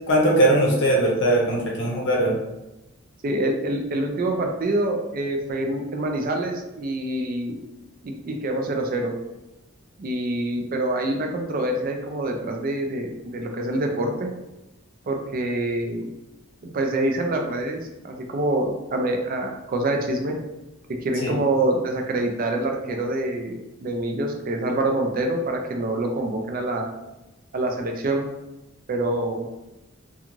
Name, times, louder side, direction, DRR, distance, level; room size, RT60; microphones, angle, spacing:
voice 1, 0.1-2.4 21.2-21.3, right 1 dB, 60° left, -1 dB, 0.7 m, -20 dB
voice 2, 3.2-7.6 8.0-9.1 10.0-14.3 15.1-16.0 16.6-20.3 20.9-26.9 27.5-28.2 28.9-29.5, right 1 dB, 45° right, 3 dB, 0.4 m, -26 dB
2.5 x 2.3 x 3.0 m, 0.97 s
head